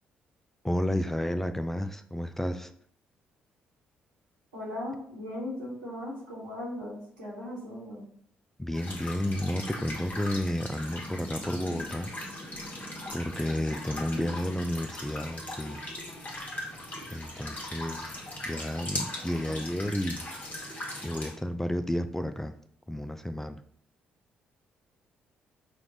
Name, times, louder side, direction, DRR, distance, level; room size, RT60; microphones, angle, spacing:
voice 1, 0.6-2.7 8.6-12.1 13.1-15.8 17.1-18.1 18.5-20.3 21.0-22.6 22.9-23.6, left 1 dB, 5° left, 10 dB, 0.3 m, -31 dB
voice 2, 4.5-8.0 13.6-13.7 14.1-14.2, left 1 dB, 85° right, -7 dB, 1.5 m, -38 dB
sound 1, 8.7-21.3, left 1 dB, 35° left, 1.4 m, -39 dB
5.0 x 2.5 x 3.2 m, 0.62 s
figure-of-eight pair, 45°, 5 cm